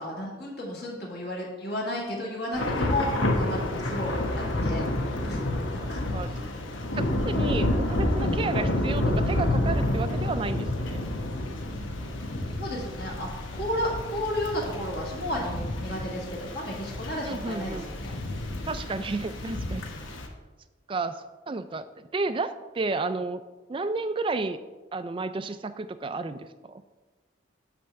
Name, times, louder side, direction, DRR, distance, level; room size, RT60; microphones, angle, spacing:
voice 1, 0.0-4.9 5.2-5.4 5.7-6.0 6.3-6.5 12.6-18.2, left 1 dB, 55° left, -3 dB, 1.9 m, -33 dB
Thunder / Rain, 2.5-20.3, left 1 dB, 85° left, 1.1 m, -29 dB
voice 2, 6.9-11.0 17.2-17.9 18.6-19.8 20.9-23.4 23.7-24.6 24.9-26.8, right 3 dB, 25° right, 11 dB, 0.3 m, -32 dB
8.6 x 3.4 x 6.5 m, 1.2 s
head